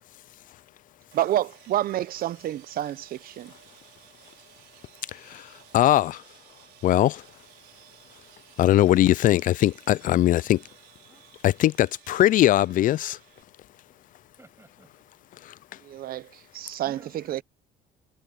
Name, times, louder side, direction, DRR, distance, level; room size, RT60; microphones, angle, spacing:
voice 1, 1.1-3.5 15.8-16.3 16.5-17.0 17.3-17.4, right 13 dB, 60° right, 0.8 m, -28 dB
Sawing, 1.1-13.4, right 17 dB, 90° right, 5.4 m, -55 dB
voice 2, 5.7-6.2 6.8-7.2 8.6-10.6 11.4-13.2, left 13 dB, 55° left, 0.4 m, -20 dB
voice 3, 12.3-12.9 14.4-15.1 16.6-17.4, right 2 dB, 15° right, 7.3 m, -55 dB
cardioid pair, 110°, 17 cm